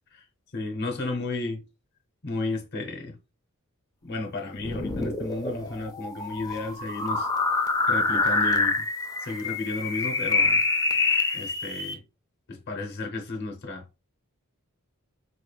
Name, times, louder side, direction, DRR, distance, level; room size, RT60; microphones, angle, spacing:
voice 1, 0.5-1.6 2.2-3.2 4.0-7.3 7.6-8.9 9.2-10.6 11.3-12.0 12.5-13.9, left 2 dB, 50° left, 0.8 m, -33 dB
sound 1, 4.5-11.9, left 3 dB, 15° left, 0.5 m, -26 dB
4.2 x 3.2 x 2.3 m
head